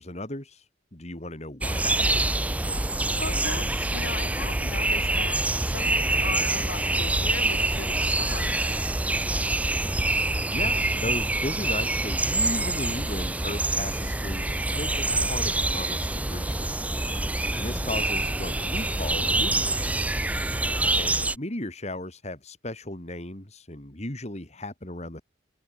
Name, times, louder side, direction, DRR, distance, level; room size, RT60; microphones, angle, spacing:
voice 1, 0.0-2.4 10.3-17.3 17.5-20.1 20.9-25.2, left 1 dB, 35° left, 3.1 m, -36 dB
sound 1, 1.6-21.4, right 2 dB, 10° right, 0.5 m, -26 dB
voice 2, 2.9-8.8 17.6-17.9, left 5 dB, 80° left, 0.8 m, -38 dB
head